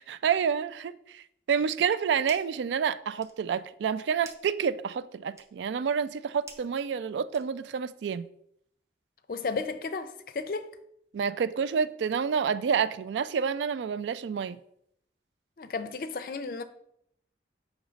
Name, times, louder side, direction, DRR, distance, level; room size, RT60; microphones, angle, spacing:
voice 1, 0.0-8.2 11.1-14.6, right 7 dB, 85° right, 0.3 m, -29 dB
sound 1, 2.0-2.6 3.0-7.9, right 3 dB, 15° right, 0.5 m, -53 dB
voice 2, 9.3-10.7 15.6-16.6, left 4 dB, 50° left, 0.4 m, -33 dB
6.3 x 3.0 x 5.0 m
head